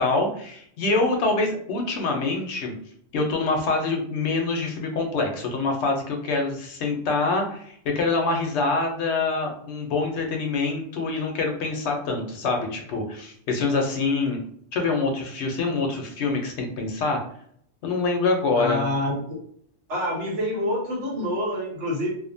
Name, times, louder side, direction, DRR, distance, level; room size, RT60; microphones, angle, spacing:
voice 1, 0.0-2.7 3.1-14.4 14.7-17.2 17.8-18.8, left 3 dB, 75° left, 3 dB, 0.8 m, -25 dB
voice 2, 18.6-19.4 19.9-22.1, left 1 dB, 80° right, -2 dB, 1.2 m, -27 dB
2.5 x 2.1 x 2.5 m, 0.65 s
omnidirectional pair, 1.2 m